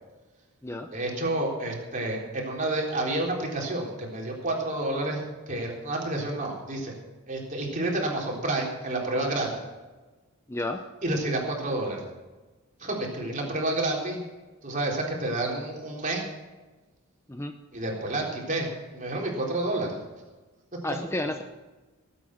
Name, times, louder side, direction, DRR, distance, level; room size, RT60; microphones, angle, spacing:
voice 1, 0.9-6.9 7.3-9.5 11.0-12.0 12.8-14.2 14.6-16.2 17.7-20.0, right 2 dB, 35° right, -2 dB, 3.9 m, -29 dB
voice 2, 10.5-10.8 17.3-17.5 20.8-21.4, left 1 dB, 10° left, 6 dB, 0.6 m, -31 dB
18.5 x 8.8 x 6.4 m, 1.2 s
head